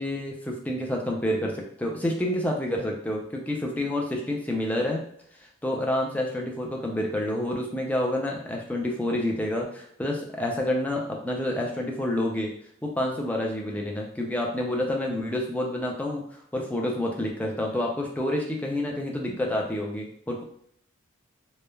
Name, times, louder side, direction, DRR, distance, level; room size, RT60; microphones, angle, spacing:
voice 1, 0.0-5.0 5.6-12.5 12.8-20.4, left 1 dB, 5° left, -1 dB, 0.3 m, -28 dB
3.1 x 2.0 x 2.2 m, 0.69 s
head